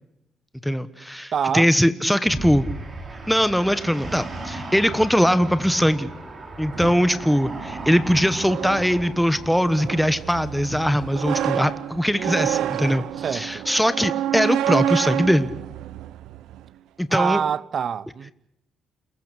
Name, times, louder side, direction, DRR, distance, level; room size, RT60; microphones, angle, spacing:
voice 1, 0.6-2.7 3.3-6.1 6.6-13.0 13.3-15.5 17.0-17.4, equal, ahead, 1.2 m, -21 dB
voice 2, 1.3-1.7 12.1-12.8 13.2-13.7 17.1-18.3, right 7 dB, 55° right, 0.8 m, -26 dB
sound 1, 2.3-9.5, right 2 dB, 40° right, 5.4 m, -35 dB
sound 2, 6.7-16.7, right 11 dB, 85° right, 0.8 m, -29 dB
28.5 x 15.5 x 8.3 m
cardioid pair, 90°, 0 cm